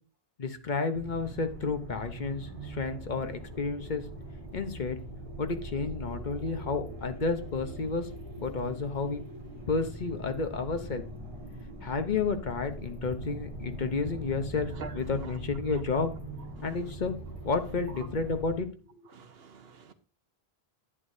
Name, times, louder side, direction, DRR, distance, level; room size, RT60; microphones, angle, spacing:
voice 1, 0.4-4.0 4.5-5.0 5.4-8.1 8.4-9.2 9.7-11.0 11.8-16.1 16.6-17.2 17.4-18.7, left 4 dB, 50° left, 1.0 m, -31 dB
sound 1, 1.0-18.6, right 1 dB, 30° right, 2.1 m, -41 dB
voice 2, 19.1-19.9, right 5 dB, 70° right, 1.1 m, -45 dB
11.0 x 8.4 x 2.7 m
omnidirectional pair, 1.1 m